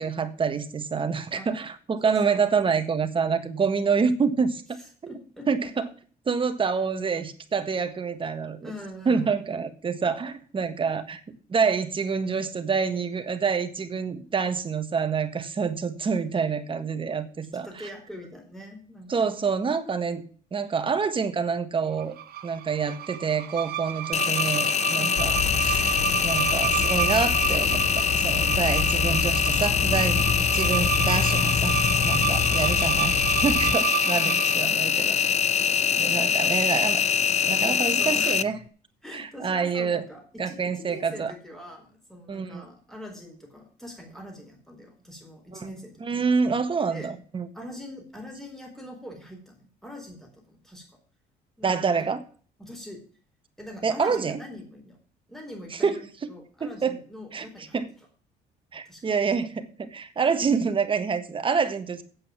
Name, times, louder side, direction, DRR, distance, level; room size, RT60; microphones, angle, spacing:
voice 1, 0.0-4.8 5.0-5.1 5.5-5.9 6.3-8.7 9.0-17.7 19.1-20.2 20.5-22.2 22.4-30.3 30.5-31.8 32.0-35.2 36.0-37.0 37.5-38.6 39.1-40.0 40.4-41.3 42.3-42.6 45.5-45.6 46.0-47.5 51.6-52.2 53.8-54.4 55.7-56.0 56.6-57.0 57.3-57.5 57.7-57.9 58.7-62.0, right 5 dB, 30° right, 9 dB, 1.5 m, -27 dB
voice 2, 2.0-2.4 4.8-5.5 8.6-9.5 17.6-19.5 24.9-25.2 32.2-32.5 34.1-34.6 36.3-36.5 37.6-38.4 39.0-46.3 46.9-47.1 47.5-50.9 51.6-51.8 52.6-53.0 53.6-55.0 55.3-57.8 58.8-59.0, equal, ahead, 1 dB, 4.3 m, -43 dB
sound 1, 22.0-34.7, right 11 dB, 65° right, 1.0 m, -31 dB
Engine, 24.1-38.4, left 8 dB, 40° left, 0.6 m, -24 dB
sound 2, 25.2-33.8, left 5 dB, 60° left, 1.2 m, -29 dB
8.7 x 7.7 x 7.4 m, 0.42 s
cardioid pair, 110°, 17 cm